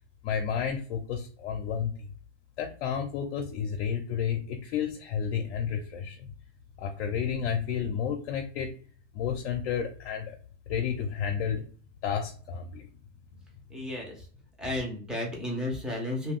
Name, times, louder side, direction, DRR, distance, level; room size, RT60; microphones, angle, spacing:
voice 1, 0.2-1.9 2.6-6.3 6.8-8.7 9.1-10.3 10.7-11.6 12.0-12.9, left 7 dB, 60° left, 1 dB, 0.6 m, -31 dB
voice 2, 13.7-14.3 14.6-16.3, left 1 dB, ahead, -1 dB, 0.5 m, -33 dB
2.3 x 2.2 x 3.5 m, 0.41 s
hypercardioid pair, 135°, 35 cm